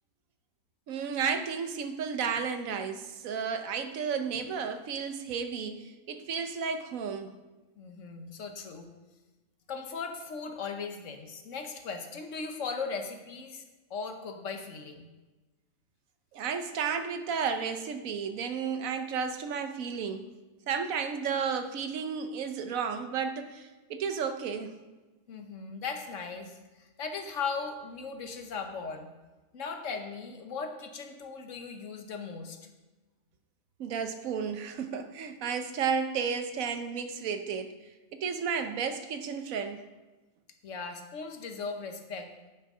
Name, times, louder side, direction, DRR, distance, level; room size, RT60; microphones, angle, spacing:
voice 1, 0.9-7.4 16.3-20.3 20.7-24.7 33.8-37.8 38.1-39.8, right 6 dB, 85° right, 8 dB, 1.2 m, -33 dB
voice 2, 7.8-8.9 9.7-13.6 13.9-15.1 25.3-29.1 29.5-32.6 40.6-42.3, left 5 dB, 70° left, 5 dB, 1.3 m, -38 dB
8.6 x 6.3 x 5.4 m, 1.2 s
omnidirectional pair, 1.4 m